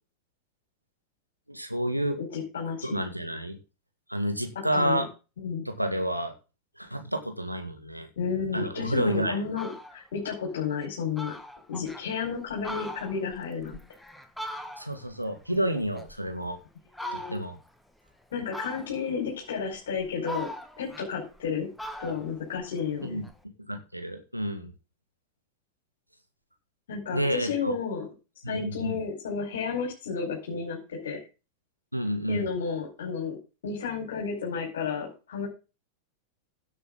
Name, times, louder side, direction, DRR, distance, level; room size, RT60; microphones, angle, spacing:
voice 1, 1.5-2.2 2.8-3.6 4.1-5.1 5.7-6.3 6.8-8.1 8.5-9.4 14.8-16.6 17.1-17.6 23.0-23.3 23.7-24.7 27.1-27.7 28.4-28.9 31.9-32.5, right 1 dB, 90° right, 6 dB, 2.0 m, -29 dB
voice 2, 2.2-3.0 4.7-5.0 5.4-5.6 8.2-11.4 11.7-13.8 17.0-17.4 18.3-20.5 20.8-21.7 22.0-23.2 26.9-28.1 28.5-31.2 32.3-33.4 33.6-35.5, left 6 dB, 60° left, -1 dB, 4.8 m, -32 dB
Fowl, 9.0-9.1 9.4-10.0 10.5-10.6 10.8-10.9 11.2-12.1 12.5-15.1 15.5-16.5 16.9-17.6 18.5-19.2 19.7-21.5 21.8-23.4, equal, 5° left, 1.5 m, -40 dB
16.0 x 8.2 x 3.8 m, 0.31 s
figure-of-eight pair, 90°, 0 cm